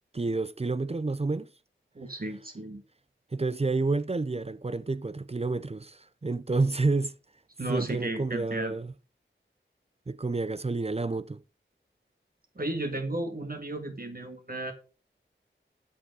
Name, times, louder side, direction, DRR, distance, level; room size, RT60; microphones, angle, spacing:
voice 1, 0.1-1.5 3.3-7.1 7.7-8.9 10.1-11.4, right 3 dB, 30° right, 0.5 m, -29 dB
voice 2, 1.9-2.8 7.6-8.7 12.5-14.7, right 1 dB, 45° right, 1.6 m, -34 dB
7.6 x 6.6 x 5.3 m
wide cardioid pair, 70°, 21 cm